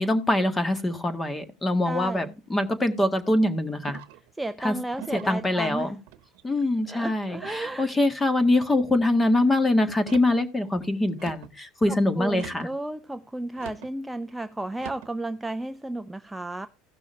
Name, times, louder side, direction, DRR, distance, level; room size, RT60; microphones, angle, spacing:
voice 1, 0.0-4.0 4.6-4.7 5.1-6.0 6.4-12.7, left 1 dB, 15° left, 1.6 m, -24 dB
voice 2, 1.8-2.3 4.4-5.9 6.9-7.9 11.9-16.7, right 2 dB, 5° right, 0.5 m, -33 dB
sound 1, 3.8-4.3 5.0-5.4 6.1-6.6 7.3-7.7 8.4-8.8 9.9-10.4 11.2-11.6 12.3-12.8 13.6-13.9 14.7-15.1, right 13 dB, 70° right, 1.0 m, -43 dB
16.5 x 6.1 x 3.3 m
supercardioid pair, 95°, 0 cm